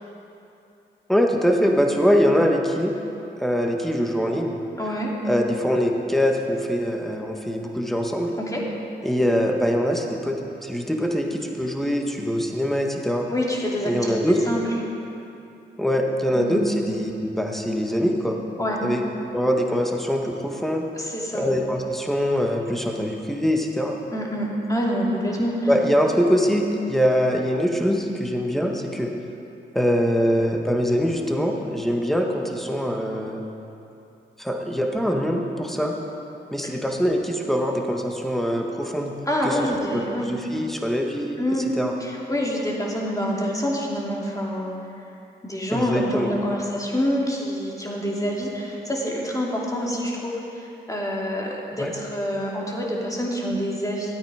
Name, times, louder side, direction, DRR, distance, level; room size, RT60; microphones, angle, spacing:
voice 1, 1.1-2.9 3.4-4.5 5.2-8.3 9.0-13.3 13.8-14.4 15.8-18.4 18.8-19.0 19.3-20.8 21.3-24.0 25.7-29.1 29.7-33.4 34.4-35.9 36.5-39.1 39.4-41.4 41.8-41.9 45.7-46.3 51.8-51.9, equal, ahead, 1 dB, 1.6 m, -23 dB
voice 2, 4.8-5.1 8.4-8.6 13.3-14.2 14.5-14.6 16.3-16.6 18.6-18.8 21.0-21.5 24.1-25.7 39.3-40.3 41.4-41.7 42.0-44.7 45.4-54.1, equal, 15° left, -3 dB, 2.7 m, -26 dB
13.5 x 8.9 x 5.1 m, 2.8 s
supercardioid pair, 45°, 20 cm